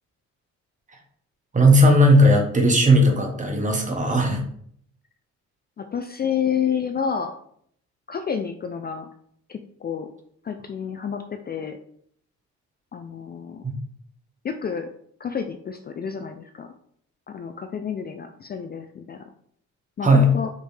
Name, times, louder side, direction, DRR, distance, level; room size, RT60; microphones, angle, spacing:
voice 1, 1.5-4.4 13.6-13.7 20.0-20.4, equal, 25° right, 2 dB, 1.2 m, -17 dB
voice 2, 5.8-7.3 8.1-9.1 9.5-10.1 10.4-11.8 12.9-13.6 14.4-14.9 15.2-16.7 17.3-19.2 20.0-20.5, left 7 dB, 35° left, 7 dB, 0.4 m, -29 dB
5.0 x 3.2 x 3.3 m, 0.65 s
cardioid pair, 90°, 30 cm